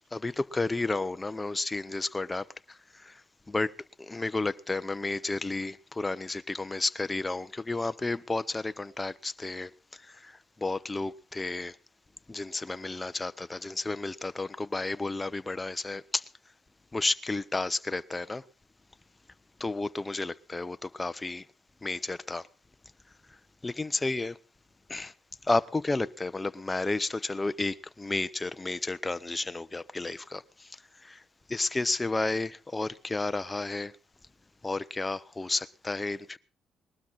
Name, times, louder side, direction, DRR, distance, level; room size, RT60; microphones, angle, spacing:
voice 1, 0.1-11.8 12.3-16.3 16.9-18.4 19.6-21.5 21.8-22.5 23.3-23.4 23.6-24.4 24.9-25.1 25.4-31.2 31.5-33.9 34.6-36.4, left 2 dB, 20° left, 0.8 m, -32 dB
20.0 x 12.5 x 4.1 m
cardioid pair, 90°, 0 cm